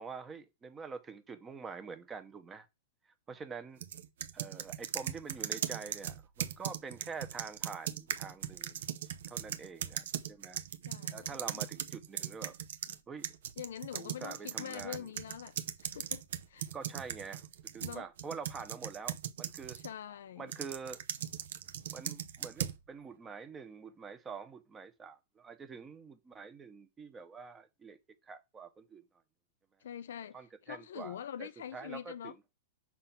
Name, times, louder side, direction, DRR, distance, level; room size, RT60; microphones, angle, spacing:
voice 1, 0.0-2.7 3.0-3.8 4.3-8.9 9.3-10.6 11.1-12.6 13.1-13.4 13.9-15.1 16.7-17.5 17.7-19.8 20.4-21.0 21.9-28.0 28.2-29.0 30.3-32.3, right 5 dB, 20° right, 1.0 m, -46 dB
sound 1, 3.8-13.0 13.2-19.9 20.5-22.8, right 10 dB, 70° right, 0.7 m, -39 dB
voice 2, 10.8-11.6 12.9-13.0 13.6-16.7 17.8-18.1 19.7-20.5 29.8-32.3, left 9 dB, 75° left, 0.6 m, -45 dB
5.9 x 3.7 x 5.8 m
hypercardioid pair, 125°, 0 cm